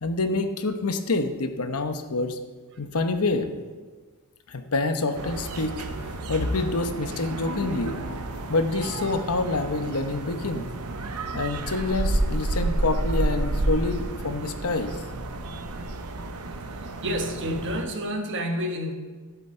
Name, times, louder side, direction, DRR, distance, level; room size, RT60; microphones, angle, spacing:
voice 1, 0.0-2.4 2.8-3.5 4.5-5.9 6.3-8.0 8.5-10.7 11.3-15.0, left 3 dB, 75° left, 8 dB, 0.9 m, -27 dB
sound 1, 5.1-17.9, right 2 dB, 80° right, 0.8 m, -30 dB
voice 2, 17.0-18.9, equal, 55° right, 3 dB, 1.3 m, -29 dB
12.0 x 8.3 x 4.4 m, 1.4 s
head